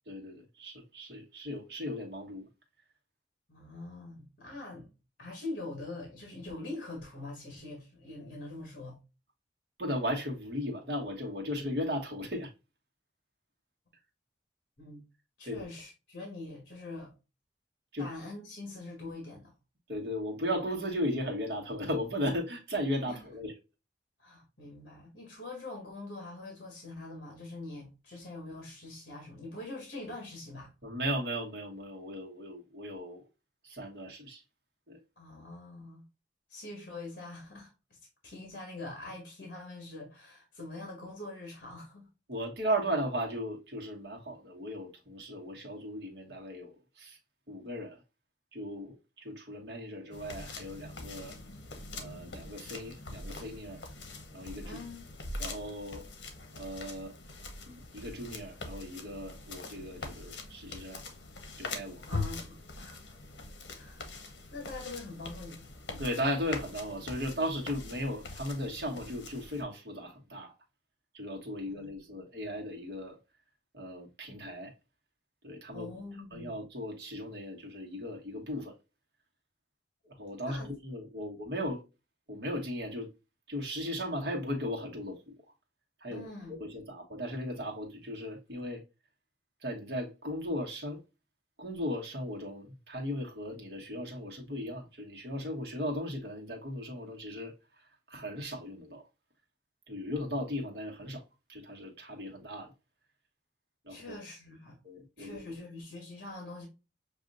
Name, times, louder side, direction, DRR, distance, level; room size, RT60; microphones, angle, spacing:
voice 1, 0.1-2.5 9.8-12.5 15.4-15.7 17.9-18.1 19.9-23.5 30.8-33.3 33.6-34.4 34.9-35.0 42.3-47.2 47.5-48.0 48.5-51.4 51.9-53.8 54.3-54.8 55.4-56.1 56.5-57.2 57.7-61.0 61.6-62.0 65.9-70.5 71.1-73.2 73.7-74.7 75.4-75.9 76.3-78.7 80.0-81.8 82.3-83.1 83.5-85.3 86.0-86.2 86.5-88.8 89.6-91.0 91.6-97.5 98.1-99.0 99.9-101.2 101.5-102.7 103.8-104.2 104.8-105.5, equal, 60° right, 1.3 m, -36 dB
voice 2, 3.5-4.9 5.2-9.0 14.8-15.0 15.4-17.1 18.0-19.5 23.1-23.2 24.2-30.7 35.2-36.0 36.5-37.7 38.2-42.1 54.6-55.1 62.1-63.1 63.7-64.1 64.5-65.7 71.7-72.0 75.7-76.6 80.4-80.7 86.1-86.5 103.9-104.8 105.2-106.7, left 2 dB, 50° left, 1.6 m, -44 dB
sound 1, 50.1-69.6, left 3 dB, 80° left, 1.0 m, -43 dB
6.5 x 2.7 x 2.5 m
head